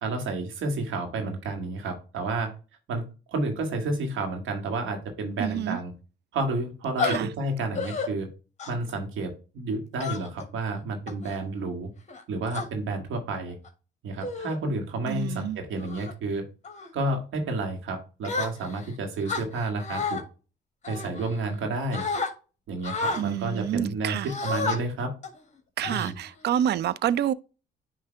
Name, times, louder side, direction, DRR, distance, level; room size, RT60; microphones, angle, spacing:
voice 1, 0.0-2.5 2.9-5.9 6.3-8.3 8.7-11.9 12.3-13.6 14.0-16.5 16.9-20.2 20.9-22.0 22.7-25.1 25.8-26.2, right 2 dB, 80° right, 2.2 m, -30 dB
voice 2, 5.4-5.8 7.0-7.3 15.1-15.6 23.2-24.3 25.8-27.3, right 10 dB, 55° right, 0.4 m, -28 dB
sound 1, 7.0-7.2 7.8-8.1 8.6-8.9 10.0-10.4 11.1-11.4 12.1-12.7 13.5-13.7 14.2-14.6 15.1-15.3 15.8-16.1 16.6-16.9 18.2-18.9 19.3-20.2 20.8-21.6 21.9-22.3 22.8-23.2 24.2-24.8 25.2-25.4 25.8-26.5, left 4 dB, 35° left, 1.8 m, -31 dB
9.6 x 3.3 x 3.4 m
cardioid pair, 90°, 20 cm